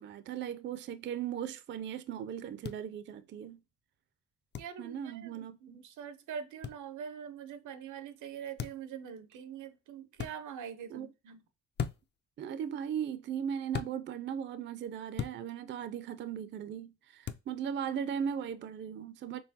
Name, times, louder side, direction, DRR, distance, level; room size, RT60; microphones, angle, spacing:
voice 1, 0.0-3.6 4.8-5.8 10.9-11.1 12.4-19.4, right 8 dB, 40° right, 0.4 m, -38 dB
sound 1, 2.6-2.8 4.5-4.7 6.6-6.8 8.6-8.9 10.1-10.3 11.8-12.2 13.7-13.9 15.2-15.4 17.2-17.5, left 8 dB, 40° left, 0.4 m, -37 dB
voice 2, 4.6-11.4, right 8 dB, 80° right, 0.7 m, -44 dB
4.5 x 3.2 x 2.7 m
cardioid pair, 90°, 30 cm